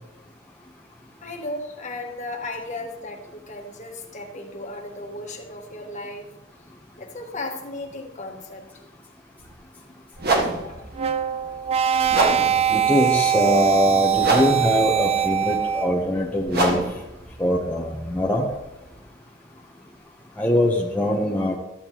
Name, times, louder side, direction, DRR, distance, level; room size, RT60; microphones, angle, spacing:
voice 1, 1.2-6.3 7.0-8.6 10.5-10.9, left 2 dB, 40° left, 1 dB, 1.4 m, -35 dB
sound 1, 9.4-9.5 10.2-19.0, right 2 dB, 55° right, 1.6 m, -28 dB
sound 2, 10.9-16.1, right 9 dB, 30° right, 0.3 m, -22 dB
voice 2, 12.7-16.8 17.4-18.5 20.4-21.6, left 1 dB, 10° left, -2 dB, 0.8 m, -22 dB
13.0 x 8.7 x 2.9 m, 0.98 s
head